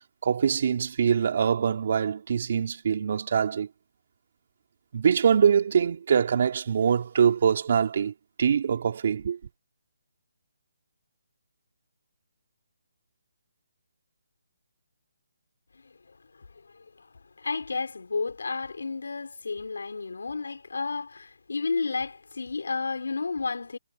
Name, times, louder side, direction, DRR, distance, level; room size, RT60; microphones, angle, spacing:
voice 1, 0.2-3.7 4.9-8.1 8.4-9.4, right 7 dB, 50° right, 3.4 m, -23 dB
voice 2, 16.7-17.1 17.4-23.8, left 4 dB, 80° left, 4.6 m, -31 dB
hypercardioid pair, 160°, 0 cm